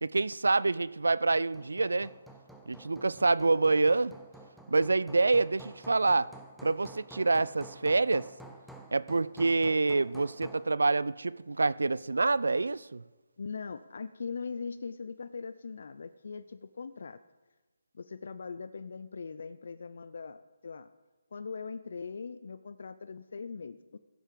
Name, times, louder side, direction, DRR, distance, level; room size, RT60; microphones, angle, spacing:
voice 1, 0.0-2.1 2.7-4.1 4.7-6.3 6.6-8.3 8.9-13.0, right 3 dB, 90° right, 0.3 m, -27 dB
Hammer, 1.3-10.7, right 2 dB, ahead, 0.7 m, -51 dB
voice 2, 13.4-17.2 17.9-20.9 21.3-24.0, left 5 dB, 65° left, 0.5 m, -41 dB
15.5 x 7.5 x 5.2 m
hypercardioid pair, 155°, 0 cm